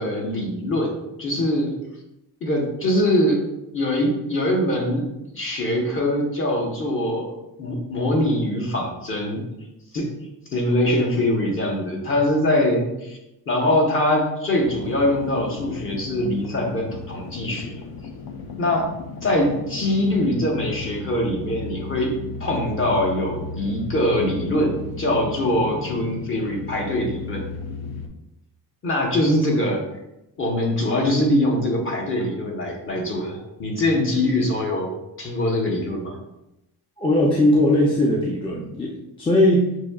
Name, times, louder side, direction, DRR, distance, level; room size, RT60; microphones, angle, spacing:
voice 1, 0.0-1.7 2.4-3.4 3.7-5.0 5.3-7.3 7.6-9.4 9.9-10.1 10.5-13.2 13.5-17.7 18.6-18.9 19.2-22.1 22.4-24.7 25.0-27.4 28.8-29.8 30.4-34.9 35.2-36.1, left 1 dB, 35° left, -1 dB, 0.9 m, -23 dB
sound 1, 14.6-28.1, left 3 dB, 75° left, 0.6 m, -35 dB
voice 2, 37.0-39.8, left 1 dB, 15° left, -3 dB, 0.4 m, -19 dB
6.0 x 2.7 x 2.3 m, 0.91 s
cardioid pair, 140°, 38 cm